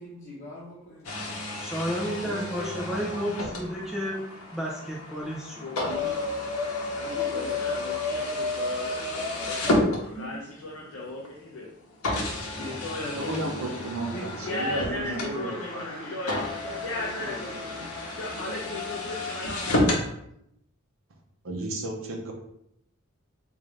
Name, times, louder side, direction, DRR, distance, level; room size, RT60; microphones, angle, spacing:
voice 1, 0.0-1.6 2.2-3.2 6.6-7.5 10.0-10.3 11.7-16.2 16.6-18.0, equal, 35° left, -8 dB, 0.9 m, -41 dB
sound 1, 1.0-10.5 11.2-11.3 12.0-20.1, left 2 dB, 80° left, 0.8 m, -31 dB
voice 2, 1.6-4.2 4.5-5.7, equal, ahead, -4 dB, 0.5 m, -31 dB
voice 3, 5.6-6.2 7.0-9.7 10.0-11.7 12.4-13.3 14.5-17.6 18.2-20.1, left 2 dB, 65° left, -3 dB, 0.5 m, -37 dB
voice 4, 13.2-15.5 21.4-22.3, right 2 dB, 65° right, 2 dB, 0.7 m, -33 dB
3.7 x 2.6 x 3.2 m, 0.75 s
head